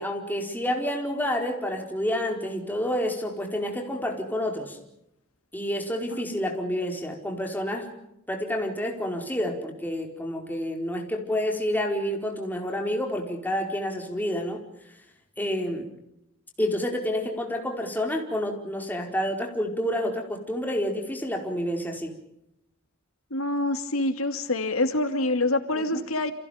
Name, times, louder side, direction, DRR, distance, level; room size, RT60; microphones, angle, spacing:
voice 1, 0.0-4.8 5.5-7.9 8.3-14.6 15.4-15.9 16.6-22.1 25.7-26.0, equal, 10° left, 2 dB, 4.6 m, -29 dB
voice 2, 23.3-26.3, left 2 dB, 85° left, 8 dB, 2.6 m, -26 dB
30.0 x 28.0 x 5.2 m, 0.80 s
head